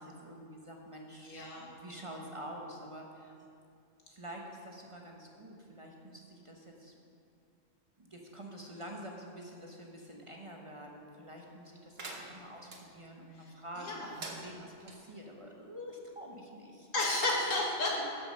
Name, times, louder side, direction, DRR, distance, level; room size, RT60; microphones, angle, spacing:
voice 1, 0.0-3.3 4.1-6.9 8.0-16.9 17.5-17.7, equal, 30° right, 0 dB, 0.9 m, -47 dB
voice 2, 1.2-1.7 13.3-13.4 13.8-14.1 16.9-18.0, left 2 dB, 85° left, -2 dB, 2.1 m, -32 dB
sound 1, 12.0-12.8 14.0-15.0, right 2 dB, 55° right, 1.3 m, -46 dB
13.5 x 5.8 x 5.3 m, 2.4 s
omnidirectional pair, 1.3 m